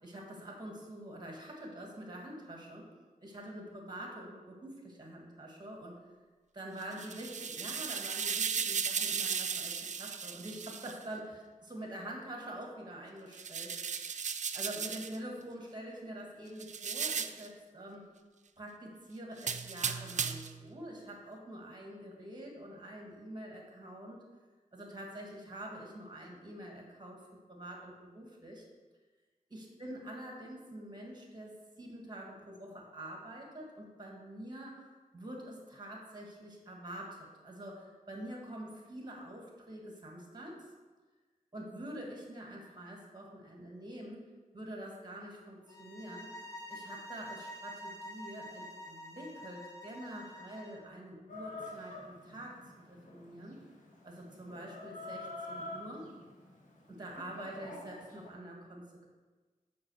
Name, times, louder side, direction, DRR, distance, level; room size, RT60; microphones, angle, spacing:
voice 1, 0.0-2.9 3.2-6.0 6.5-13.7 14.5-18.1 18.6-24.2 24.7-28.6 29.5-34.8 35.1-40.7 41.5-44.3 44.5-46.4 46.7-52.6 52.9-53.6 54.0-56.1 56.9-59.1, right 1 dB, 30° right, 0 dB, 2.1 m, -46 dB
sound 1, 6.8-11.0 13.3-15.2 16.6-17.5 19.4-20.6, right 6 dB, 60° right, 0.4 m, -36 dB
sound 2, 45.7-50.8, equal, 20° left, 1.1 m, -47 dB
Chicken rooster, 51.3-58.3, left 2 dB, 70° left, 1.9 m, -47 dB
6.4 x 5.7 x 6.3 m, 1.3 s
wide cardioid pair, 105°, 14 cm